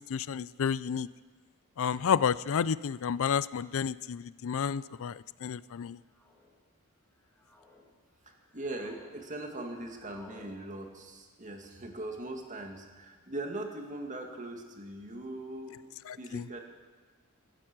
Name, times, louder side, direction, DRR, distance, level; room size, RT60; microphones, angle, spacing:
voice 1, 0.1-1.1 1.8-6.0 16.3-16.4, left 7 dB, 65° left, 18 dB, 0.4 m, -30 dB
sound 1, 3.7-3.9 4.8-5.2 6.0-6.5 7.1-7.8 8.3-9.2 9.4-10.5, left 2 dB, 10° left, 2.7 m, -57 dB
voice 2, 8.2-15.8 16.1-16.6, right 2 dB, 35° right, 3 dB, 2.0 m, -40 dB
16.5 x 13.5 x 6.1 m, 1.4 s
head